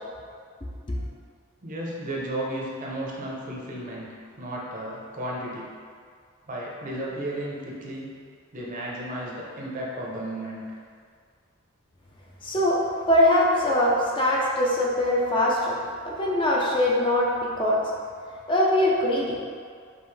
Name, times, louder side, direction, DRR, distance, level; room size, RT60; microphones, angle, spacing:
voice 1, 1.6-5.7 6.5-8.1 8.5-10.7, right 1 dB, 40° right, -4 dB, 0.7 m, -34 dB
voice 2, 12.4-12.8 13.1-15.8 16.0-17.8 18.5-19.5, left 1 dB, 25° left, -4 dB, 0.5 m, -22 dB
5.3 x 2.5 x 3.3 m, 2.1 s
head